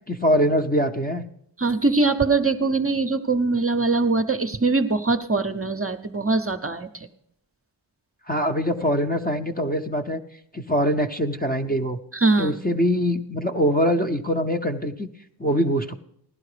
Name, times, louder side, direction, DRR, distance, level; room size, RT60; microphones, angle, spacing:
voice 1, 0.1-1.3 8.3-10.2 10.5-12.0 12.4-15.1 15.4-15.9, equal, 20° left, 5 dB, 0.7 m, -23 dB
voice 2, 1.6-7.1 12.1-12.5, right 3 dB, 30° right, 7 dB, 0.7 m, -22 dB
16.0 x 11.5 x 5.0 m, 0.74 s
wide cardioid pair, 85°, 48 cm